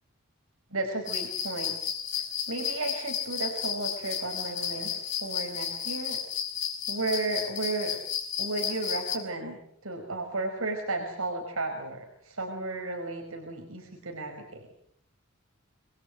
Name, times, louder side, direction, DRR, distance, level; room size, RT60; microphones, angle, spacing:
voice 1, 0.7-1.7 2.1-6.2 6.9-8.0 8.4-14.6, right 2 dB, 80° right, 2 dB, 5.2 m, -34 dB
sound 1, 1.1-9.2, left 8 dB, 60° left, 6.2 m, -33 dB
27.5 x 23.0 x 7.7 m, 0.64 s
head